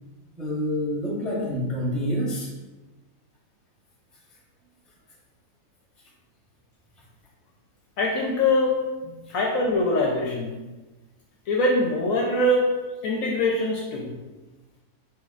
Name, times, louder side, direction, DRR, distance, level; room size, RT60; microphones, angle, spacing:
voice 1, 0.4-2.5, equal, ahead, -5 dB, 0.7 m, -27 dB
voice 2, 8.0-8.8 9.3-10.6 11.5-12.8 13.0-14.1, left 1 dB, 70° left, -1 dB, 0.9 m, -23 dB
4.4 x 4.4 x 2.4 m, 1.2 s
omnidirectional pair, 1.7 m